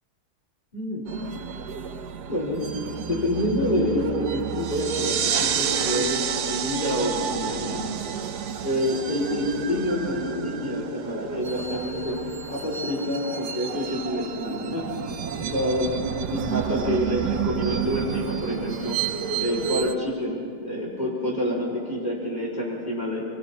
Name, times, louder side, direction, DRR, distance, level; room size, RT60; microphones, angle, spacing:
voice 1, 0.7-1.1 2.3-2.6 3.0-7.8 8.6-12.2 12.5-14.9 15.4-15.9 16.3-19.0 19.4-23.2, left 1 dB, 25° left, -5 dB, 4.4 m, -27 dB
sound 1, 1.1-20.0, right 7 dB, 85° right, 1.5 m, -31 dB
sound 2, 4.6-9.9, right 8 dB, 60° right, 0.6 m, -30 dB
27.0 x 22.5 x 4.3 m, 2.2 s
omnidirectional pair, 1.7 m